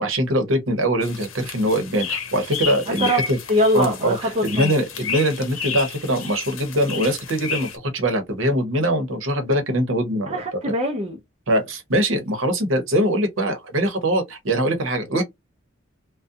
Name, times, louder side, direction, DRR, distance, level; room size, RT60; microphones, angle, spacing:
voice 1, 0.0-3.4 3.7-10.3 10.7-10.8 11.5-15.2, right 1 dB, 75° right, 0.9 m, -22 dB
sound 1, 1.0-7.8, left 7 dB, 90° left, 0.7 m, -32 dB
voice 2, 2.9-4.8 10.3-11.2, equal, 30° right, 0.4 m, -23 dB
2.4 x 2.1 x 2.6 m
head